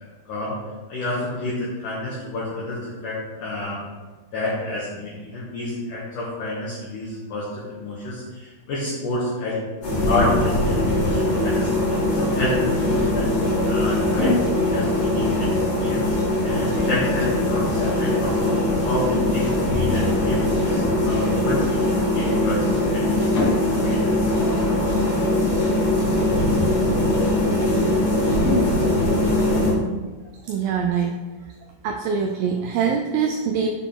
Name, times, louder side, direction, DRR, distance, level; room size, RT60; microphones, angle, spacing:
voice 1, 0.9-3.8 4.3-7.5 7.8-9.6 10.1-11.7 12.1-14.3 14.7-16.0 16.4-18.4 18.8-24.3, left 2 dB, 70° left, -6 dB, 2.1 m, -29 dB
sound 1, 9.8-29.7, left 1 dB, 45° left, 2.2 m, -21 dB
voice 2, 30.4-31.2 31.8-33.7, right 6 dB, 85° right, 3 dB, 2.1 m, -23 dB
6.9 x 4.1 x 3.7 m, 1.3 s
omnidirectional pair, 4.7 m